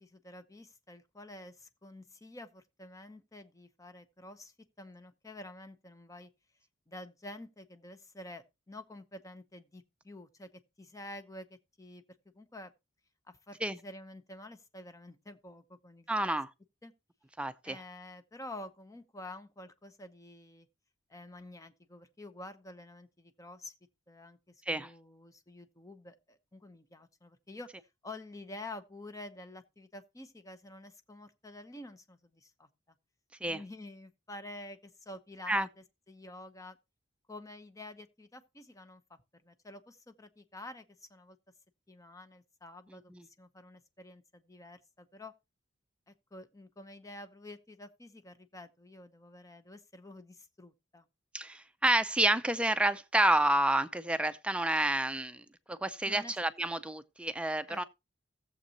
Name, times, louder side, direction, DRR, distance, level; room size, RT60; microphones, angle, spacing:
voice 1, 0.0-6.3 6.9-10.5 10.8-12.0 12.3-12.7 13.3-16.4 16.8-16.9 17.6-20.7 21.1-23.7 24.1-32.7 33.4-36.8 37.3-41.4 41.9-43.1 43.4-45.3 46.1-51.1 56.0-56.3 57.7-57.8, left 1 dB, 15° left, 0.9 m, -49 dB
voice 2, 16.1-16.5 17.4-17.8 24.7-24.9 33.4-33.6 35.5-35.7 43.1-43.2 51.3-55.4 55.7-57.8, right 1 dB, 5° right, 0.5 m, -29 dB
16.5 x 7.5 x 2.9 m
head